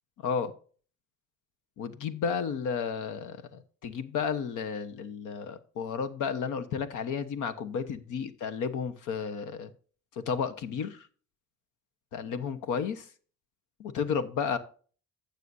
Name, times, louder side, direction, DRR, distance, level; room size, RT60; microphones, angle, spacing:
voice 1, 0.2-0.5 1.8-9.7 10.1-11.1 12.1-13.1 13.8-14.6, left 6 dB, 90° left, 12 dB, 1.1 m, -32 dB
16.0 x 6.8 x 2.7 m, 0.41 s
cardioid pair, 90°, 30 cm